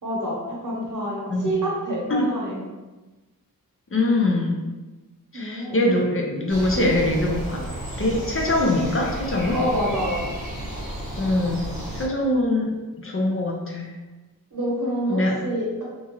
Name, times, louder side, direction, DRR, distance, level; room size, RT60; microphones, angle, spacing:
voice 1, 0.0-2.6 5.3-5.9 6.7-6.9 9.5-10.3 14.5-15.8, equal, 60° right, -3 dB, 0.9 m, -27 dB
voice 2, 3.9-4.6 5.3-7.6 8.0-9.6 11.2-11.7 11.9-12.7 13.0-13.9 15.1-15.4, left 1 dB, 40° left, -1 dB, 0.5 m, -23 dB
sound 1, 6.5-12.1, right 1 dB, 70° left, 1.3 m, -32 dB
2.9 x 2.4 x 2.9 m, 1.2 s
wide cardioid pair, 75°, 35 cm